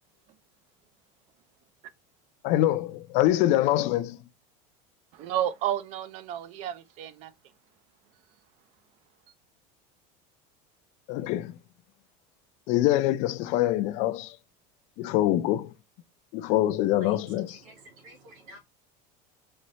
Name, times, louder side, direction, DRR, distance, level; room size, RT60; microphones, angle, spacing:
voice 1, 2.4-4.2 11.1-11.6 12.7-14.4 15.0-15.7 16.3-17.6, left 14 dB, 45° left, 0.4 m, -25 dB
voice 2, 5.1-7.3, right 11 dB, 40° right, 0.5 m, -31 dB
voice 3, 17.6-18.6, equal, 80° right, 2.6 m, -48 dB
4.3 x 3.2 x 2.8 m
cardioid pair, 170°, 17 cm